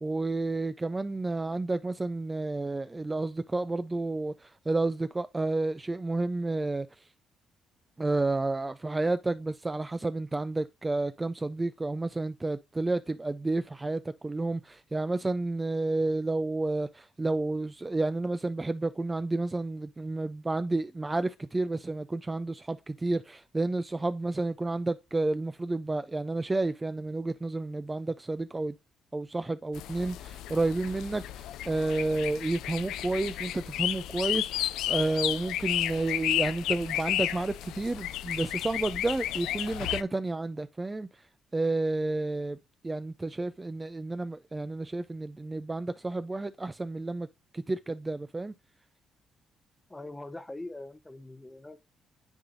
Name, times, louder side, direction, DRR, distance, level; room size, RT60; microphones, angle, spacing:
voice 1, 0.0-7.0 8.0-28.8 29.1-41.1 41.5-42.6 42.8-47.3 47.5-48.5, right 2 dB, 20° right, 0.3 m, -31 dB
sound 1, 29.7-40.0, left 13 dB, 90° left, 0.3 m, -33 dB
voice 2, 49.9-51.8, left 2 dB, 15° left, 0.7 m, -42 dB
9.8 x 3.9 x 2.5 m
cardioid pair, 90°, 0 cm